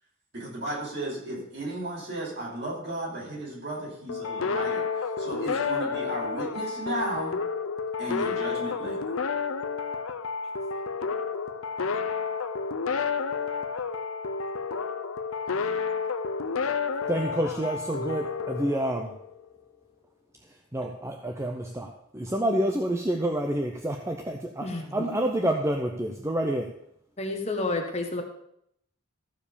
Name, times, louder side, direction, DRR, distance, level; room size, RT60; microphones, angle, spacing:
voice 1, 0.3-7.4 8.0-9.1, right 1 dB, 50° right, -5 dB, 5.1 m, -34 dB
sound 1, 4.1-19.5, left 5 dB, 80° left, 0.7 m, -30 dB
voice 2, 17.1-19.1 20.7-26.7, right 1 dB, 15° right, 3 dB, 0.6 m, -28 dB
voice 3, 24.6-25.1 27.2-28.2, left 2 dB, 30° left, 3 dB, 1.2 m, -30 dB
14.0 x 4.9 x 6.8 m, 0.74 s
head